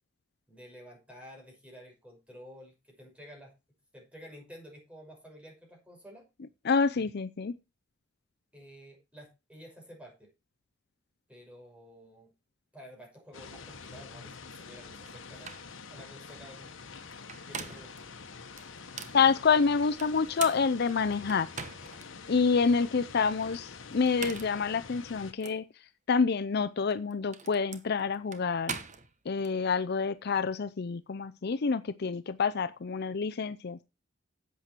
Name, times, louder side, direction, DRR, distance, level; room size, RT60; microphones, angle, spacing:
voice 1, 0.5-3.5 3.9-6.2 8.5-10.3 11.3-12.3 12.7-16.7 17.5-17.9, equal, 5° right, 5.7 m, -51 dB
voice 2, 6.7-7.5 19.1-21.5 22.3-25.6 26.1-28.8 29.3-33.8, left 5 dB, 55° left, 0.5 m, -27 dB
sound 1, 13.3-25.3, left 5 dB, 75° left, 1.4 m, -46 dB
sound 2, 15.1-15.2 15.4-15.7 17.1-18.0 18.6-19.2 20.0-22.1 22.6-22.7 23.9-24.6 25.4-25.6 26.8-29.5, right 5 dB, 40° right, 1.2 m, -41 dB
11.0 x 8.2 x 4.4 m
head